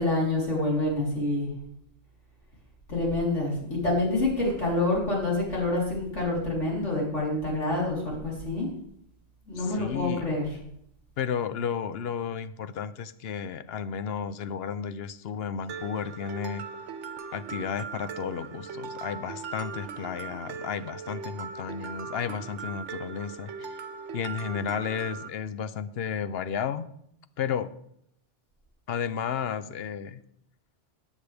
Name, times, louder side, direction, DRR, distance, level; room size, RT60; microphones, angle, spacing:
voice 1, 0.0-1.5 2.9-8.7 9.5-10.5, left 2 dB, 80° left, -4 dB, 4.3 m, -27 dB
voice 2, 9.6-10.3 11.2-16.6 17.3-23.8 24.1-26.9 27.4-27.7 28.9-30.2, left 7 dB, 65° left, 13 dB, 0.8 m, -33 dB
Mallet percussion, 15.7-25.3, right 5 dB, 85° right, 1.1 m, -39 dB
15.0 x 9.6 x 3.4 m, 0.73 s
omnidirectional pair, 1.2 m